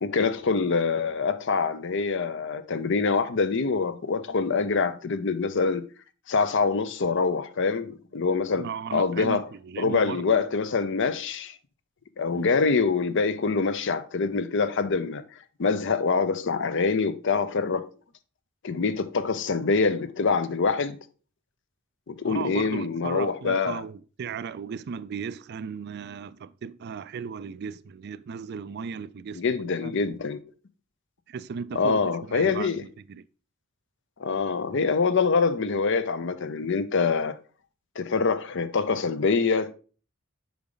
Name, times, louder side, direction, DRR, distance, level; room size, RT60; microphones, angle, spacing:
voice 1, 0.0-5.8 6.3-9.4 9.8-11.6 12.2-15.2 15.6-17.9 18.6-21.0 22.1-23.8 29.3-30.4 31.7-32.8 34.2-37.3 38.0-39.7, left 4 dB, 60° left, 0.6 m, -25 dB
voice 2, 8.6-10.4 12.3-12.5 22.2-29.9 31.3-33.2, right 6 dB, 50° right, 0.3 m, -36 dB
6.9 x 5.0 x 3.8 m
head